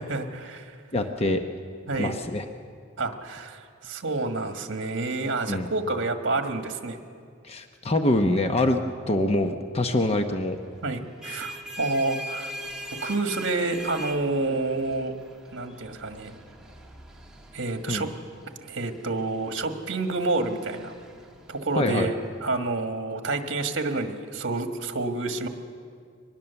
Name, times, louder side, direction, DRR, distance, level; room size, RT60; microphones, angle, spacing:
voice 1, 0.0-0.8 1.9-2.2 3.0-7.0 10.8-12.5 13.0-15.1 15.5-16.4 17.5-18.1 18.6-20.9 21.5-22.1 22.4-25.5, right 2 dB, 60° right, 6 dB, 1.6 m, -29 dB
voice 2, 0.9-1.4 2.0-2.4 5.5-5.7 7.4-8.8 9.1-10.6 17.9-18.1 21.8-22.1, left 1 dB, 30° left, 6 dB, 0.8 m, -24 dB
sound 1, 11.0-22.3, equal, 5° right, 1.6 m, -42 dB
23.5 x 20.0 x 7.0 m, 2.2 s
head